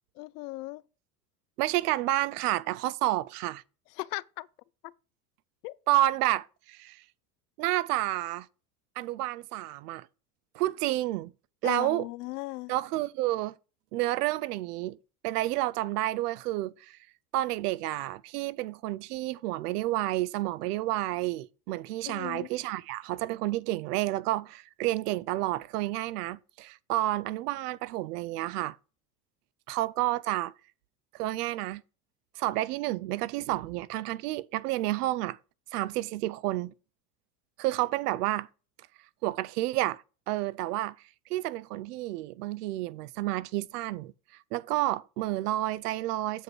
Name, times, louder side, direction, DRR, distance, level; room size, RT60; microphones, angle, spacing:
voice 1, 0.2-0.8 4.0-4.5 4.8-4.9 5.6-5.8 11.6-12.7 22.1-22.5, left 20 dB, 80° left, 0.6 m, -37 dB
voice 2, 1.6-3.6 5.9-7.0 7.6-8.5 9.0-10.1 10.5-11.3 11.6-12.1 12.7-13.6 13.9-15.0 15.2-17.0 17.3-28.8 29.7-30.5 31.1-31.8 32.4-35.4 35.7-36.7 37.6-38.5 39.2-40.9 41.3-44.1 44.5-46.4, right 16 dB, 80° right, 0.7 m, -30 dB
8.0 x 5.3 x 4.7 m
hypercardioid pair, 90°, 46 cm